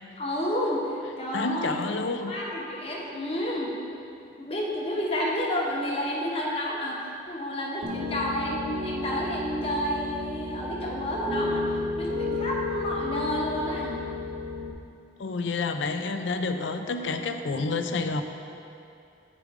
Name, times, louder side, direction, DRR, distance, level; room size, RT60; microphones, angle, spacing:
voice 1, 0.2-1.9 2.2-3.7 4.4-11.7 12.0-13.9, equal, 30° left, -3 dB, 1.0 m, -30 dB
voice 2, 1.3-2.4 15.2-18.2, left 3 dB, 80° left, 7 dB, 0.5 m, -29 dB
Piano, 7.8-14.7, left 2 dB, 35° right, 0.7 m, -32 dB
8.4 x 5.0 x 4.7 m, 2.6 s
head